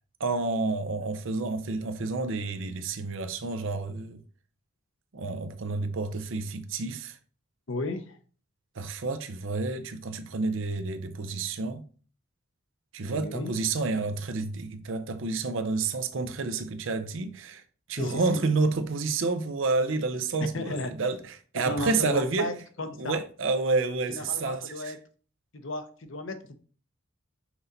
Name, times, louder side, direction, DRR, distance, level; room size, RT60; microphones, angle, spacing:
voice 1, 0.2-4.2 5.1-7.2 8.8-11.8 12.9-17.6 17.9-22.5 23.0-25.0, right 3 dB, 60° right, 0.6 m, -29 dB
voice 2, 7.7-8.2 13.1-13.5 18.0-18.4 20.5-20.9 21.7-23.2 24.1-25.0 25.5-26.6, left 2 dB, 60° left, 0.8 m, -34 dB
6.1 x 4.0 x 4.0 m
head